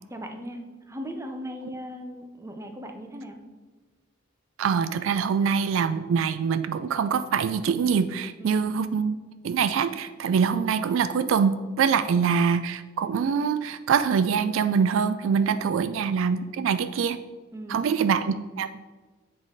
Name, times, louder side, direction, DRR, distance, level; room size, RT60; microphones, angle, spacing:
voice 1, 0.1-3.4 8.4-8.7 15.6-15.9 17.5-17.9, equal, 15° right, 5 dB, 0.6 m, -39 dB
voice 2, 4.6-9.2 9.4-17.2 17.7-18.7, right 6 dB, 70° right, 12 dB, 0.3 m, -24 dB
7.5 x 4.0 x 4.7 m, 1.3 s
head